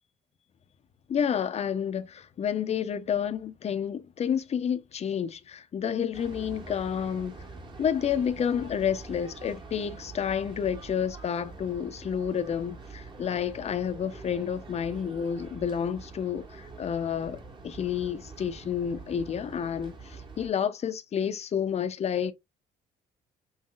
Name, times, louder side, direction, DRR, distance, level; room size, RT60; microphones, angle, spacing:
voice 1, 1.1-7.4 7.8-22.3, left 8 dB, 40° left, 0.7 m, -30 dB
sound 1, 6.1-20.5, right 3 dB, 30° right, 1.4 m, -45 dB
5.6 x 2.7 x 2.4 m
cardioid pair, 110°, 17 cm